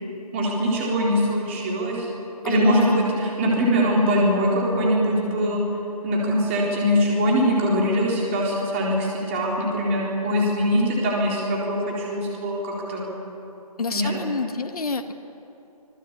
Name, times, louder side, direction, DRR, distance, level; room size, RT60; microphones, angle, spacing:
voice 1, 0.3-2.1 2.4-5.6 6.0-13.1 13.9-14.1, equal, 20° right, -3 dB, 4.1 m, -22 dB
voice 2, 2.4-3.0 13.8-15.1, left 4 dB, 65° left, 6 dB, 1.6 m, -28 dB
26.0 x 21.0 x 8.5 m, 2.9 s
hypercardioid pair, 170°, 20 cm